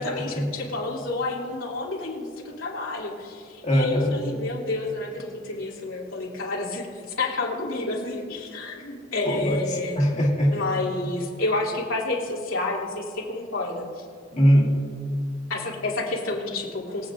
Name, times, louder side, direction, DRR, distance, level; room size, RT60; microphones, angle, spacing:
voice 1, 0.0-6.9 7.2-10.0 10.5-14.1 15.5-17.1, left 2 dB, 90° left, -4 dB, 2.9 m, -30 dB
voice 2, 3.6-4.2 9.3-9.6 10.0-10.6 14.3-14.8, equal, 35° left, -5 dB, 1.7 m, -20 dB
24.0 x 8.5 x 2.5 m, 2.4 s
head